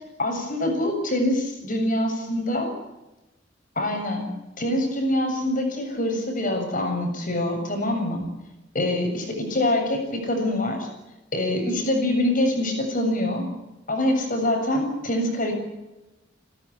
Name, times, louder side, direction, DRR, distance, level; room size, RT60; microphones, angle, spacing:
voice 1, 0.2-2.7 3.8-8.3 8.7-10.9 11.3-13.5 13.9-15.5, left 1 dB, 45° left, 4 dB, 7.5 m, -25 dB
29.5 x 13.0 x 10.0 m, 1.0 s
head